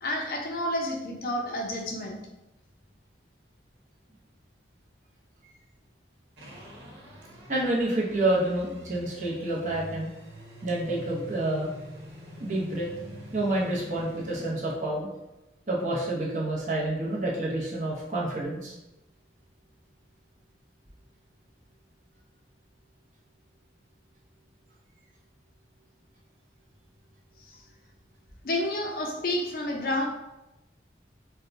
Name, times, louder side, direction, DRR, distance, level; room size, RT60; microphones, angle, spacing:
voice 1, 0.0-2.2 28.4-30.1, left 1 dB, 55° left, 1 dB, 0.5 m, -30 dB
sound 1, 6.4-14.5, equal, 75° right, 1.2 m, -45 dB
voice 2, 7.5-10.1 10.6-11.7 12.4-12.9 13.3-15.1 15.7-18.7, right 1 dB, 45° right, -4 dB, 0.8 m, -28 dB
4.4 x 2.2 x 2.6 m, 0.93 s
head